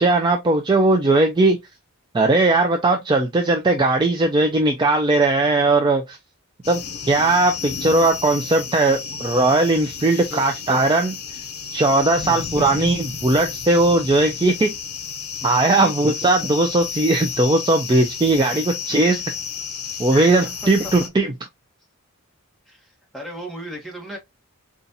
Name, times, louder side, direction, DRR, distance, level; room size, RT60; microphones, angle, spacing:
voice 1, 0.0-1.6 2.1-6.2 6.7-6.8 7.1-11.1 11.7-14.8 15.4-19.2 20.0-21.3, right 2 dB, 20° right, 0.3 m, -18 dB
sound 1, 6.6-21.1, left 7 dB, 75° left, 0.6 m, -32 dB
voice 2, 12.2-12.6 15.4-15.9 18.4-18.6 20.4-20.5 22.7-24.2, equal, ahead, 1.2 m, -36 dB
4.0 x 2.4 x 2.6 m
head